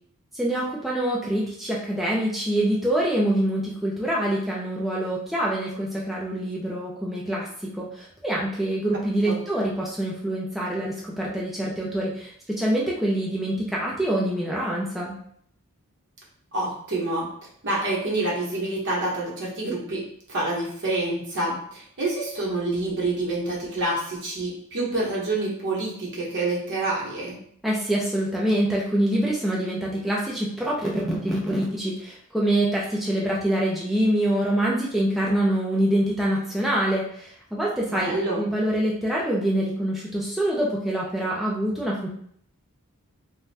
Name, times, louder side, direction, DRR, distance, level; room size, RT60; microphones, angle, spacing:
voice 1, 0.3-15.2 27.6-42.1, right 1 dB, ahead, -5 dB, 0.3 m, -25 dB
voice 2, 16.5-17.3 17.6-27.4 37.9-38.4, right 2 dB, 55° right, -4 dB, 0.9 m, -27 dB
2.5 x 2.2 x 3.2 m, 0.66 s
head